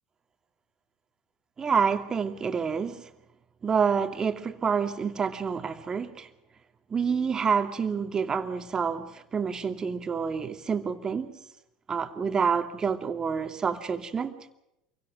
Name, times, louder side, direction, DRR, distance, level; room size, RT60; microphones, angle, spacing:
voice 1, 1.6-3.1 3.6-6.3 6.9-11.3 11.9-14.4, right 6 dB, 30° right, 2.5 m, -28 dB
28.0 x 23.5 x 5.2 m
hypercardioid pair, 75°, 2 cm